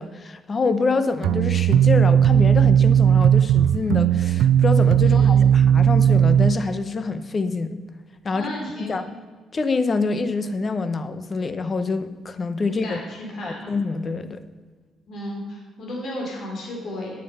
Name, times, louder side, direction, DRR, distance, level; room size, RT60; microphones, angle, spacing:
voice 1, 0.0-7.8 8.2-8.5 8.8-9.1 9.5-13.0 13.4-14.4, left 4 dB, 35° left, 11 dB, 0.9 m, -26 dB
sound 1, 1.2-6.5, right 9 dB, 85° right, 0.4 m, -16 dB
voice 2, 5.0-5.4 8.3-9.0 12.8-13.7 15.1-17.1, left 1 dB, 60° left, -2 dB, 3.6 m, -33 dB
10.0 x 9.0 x 5.5 m, 1.5 s
cardioid pair, 90°, 0 cm